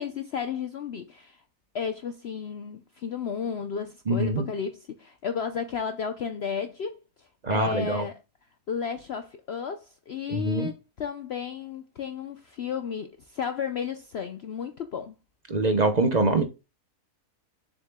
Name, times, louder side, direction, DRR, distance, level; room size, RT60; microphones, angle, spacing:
voice 1, 0.0-1.4 1.7-8.2 8.7-15.2, left 7 dB, 60° left, 0.7 m, -33 dB
voice 2, 4.1-4.5 7.4-8.0 10.3-10.7 15.5-16.4, right 2 dB, 35° right, 0.7 m, -24 dB
7.3 x 6.5 x 2.2 m
omnidirectional pair, 1.6 m